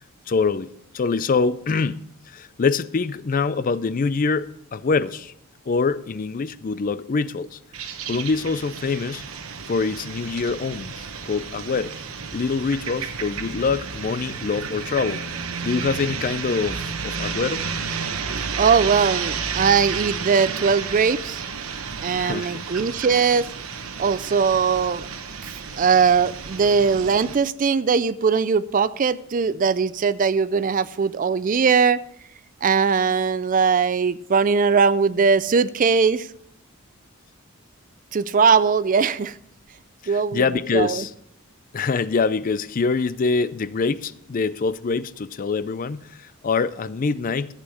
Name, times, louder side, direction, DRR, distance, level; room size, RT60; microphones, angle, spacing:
voice 1, 0.3-5.3 5.7-7.6 8.1-9.2 9.7-11.9 12.3-15.2 15.6-17.6 22.1-22.6 40.0-41.1 41.7-47.5, left 4 dB, 40° left, 0.4 m, -25 dB
sound 1, 7.7-27.4, right 5 dB, 75° right, 1.0 m, -32 dB
voice 2, 18.6-21.4 22.0-23.5 24.0-25.1 25.4-32.0 32.6-36.3 38.1-39.4 40.1-40.4 40.7-41.0, right 5 dB, 40° right, 0.4 m, -20 dB
14.0 x 8.4 x 4.9 m
head